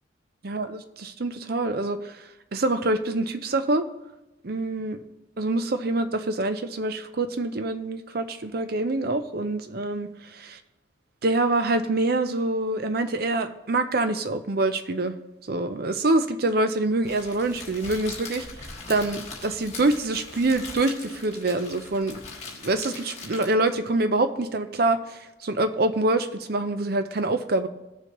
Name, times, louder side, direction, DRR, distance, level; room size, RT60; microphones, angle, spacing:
voice 1, 0.4-2.1 2.5-3.9 4.4-5.0 5.4-10.6 11.2-15.1 15.5-18.5 18.9-22.2 22.6-27.7, right 2 dB, 50° right, 10 dB, 0.6 m, -25 dB
Crackle, 17.0-23.8, left 4 dB, 35° left, 1.8 m, -41 dB
16.5 x 7.0 x 3.0 m, 0.97 s
head